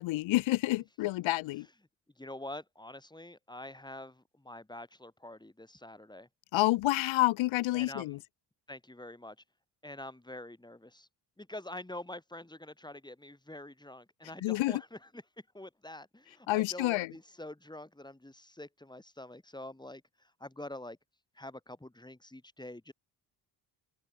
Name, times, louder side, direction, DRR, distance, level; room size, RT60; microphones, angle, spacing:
voice 1, 0.0-1.7 6.5-8.2 14.4-14.8 16.5-17.1, left 18 dB, 85° left, 2.4 m, -28 dB
voice 2, 2.2-6.3 7.7-8.2 8.7-9.4 9.8-11.1 11.4-15.2 15.5-20.0 20.4-21.0 21.4-22.9, left 1 dB, 10° left, 5.4 m, -46 dB
open air
supercardioid pair, 60°, 45 cm